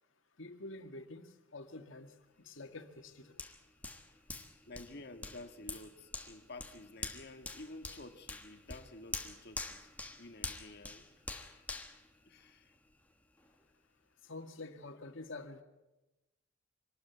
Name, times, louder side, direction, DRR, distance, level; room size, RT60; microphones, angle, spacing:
voice 1, 0.4-3.4 14.2-15.6, left 2 dB, 70° left, 6 dB, 1.9 m, -48 dB
Hands, 3.4-12.9 13.4-13.5, left 2 dB, 5° left, 1.3 m, -46 dB
voice 2, 4.6-9.9 10.2-11.6 12.3-12.7, left 2 dB, 50° left, 7 dB, 1.6 m, -51 dB
25.5 x 13.0 x 9.3 m, 1.0 s
head